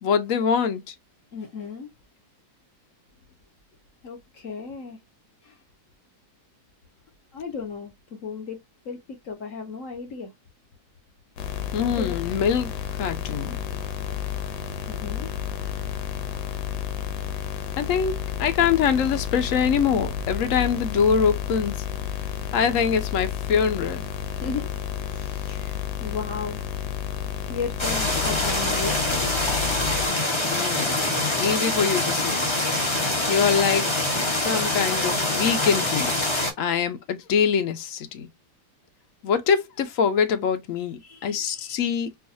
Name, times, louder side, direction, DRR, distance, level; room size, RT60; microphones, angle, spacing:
voice 1, 0.0-0.9 11.7-12.7 13.0-13.6 17.8-21.8 22.5-24.1 30.4-31.1 31.4-32.5 33.3-33.9 34.3-36.1 36.6-38.3 39.2-42.1, left 7 dB, 65° left, 0.8 m, -24 dB
voice 2, 1.3-1.9 4.0-5.0 5.4-5.6 7.3-8.6 8.8-10.3 11.8-12.1 14.9-15.3 24.3-24.7 25.1-26.6 27.5-29.2 41.0-41.9, left 5 dB, 45° left, 1.3 m, -35 dB
sound 1, 11.4-30.1, left 9 dB, 80° left, 1.4 m, -31 dB
sound 2, 27.8-36.5, left 2 dB, 25° left, 0.6 m, -25 dB
4.7 x 2.6 x 2.6 m
omnidirectional pair, 2.1 m